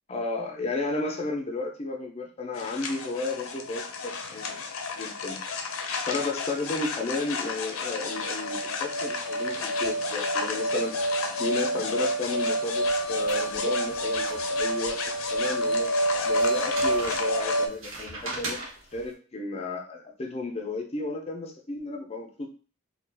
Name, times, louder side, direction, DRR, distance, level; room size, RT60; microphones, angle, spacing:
voice 1, 0.1-4.6 5.0-5.4 6.1-10.9 11.4-15.9 16.3-18.6 18.9-22.5, left 3 dB, 30° left, 3 dB, 0.4 m, -33 dB
sound 1, 2.6-17.7, equal, 85° left, 0.4 m, -29 dB
sound 2, 12.9-14.9 15.3-15.4 16.2-19.0, right 2 dB, 90° right, 0.9 m, -39 dB
2.4 x 2.1 x 3.3 m, 0.38 s
head